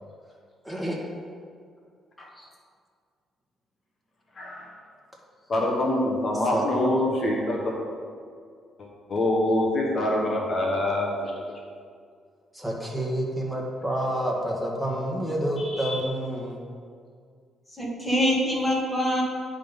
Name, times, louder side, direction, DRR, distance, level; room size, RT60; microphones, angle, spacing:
voice 1, 5.5-7.7 8.8-11.3 15.6-16.0, left 1 dB, 45° left, -1 dB, 1.3 m, -25 dB
voice 2, 6.5-6.9 12.5-16.6, right 1 dB, ahead, -2 dB, 1.6 m, -28 dB
voice 3, 17.8-19.2, equal, 20° left, -3 dB, 2.0 m, -25 dB
9.8 x 3.8 x 5.4 m, 2.1 s
cardioid pair, 90°, 0 cm